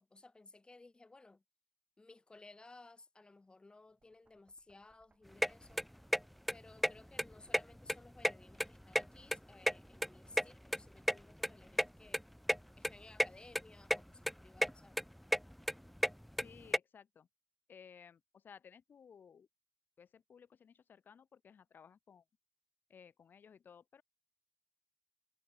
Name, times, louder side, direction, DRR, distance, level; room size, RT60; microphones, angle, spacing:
voice 1, 0.0-1.4 2.0-5.9 6.5-12.2 12.8-15.0, left 3 dB, 25° left, 2.7 m, -59 dB
Knock, 3.8-8.0, right 3 dB, 30° right, 7.4 m, -74 dB
sound 1, 5.4-5.5 5.8-6.2 6.5-6.6 6.8-6.9 7.2-7.9 8.2-9.4 9.7-11.2 11.4-11.5 11.8-11.9 12.1-12.2 12.5-12.6 12.8-13.3 13.5-14.0 14.2-14.7 15.0-16.8, equal, ahead, 0.4 m, -32 dB
voice 2, 16.4-17.3 17.7-19.5 20.0-22.2 22.9-24.0, left 7 dB, 55° left, 3.0 m, -58 dB
cardioid pair, 70°, 4 cm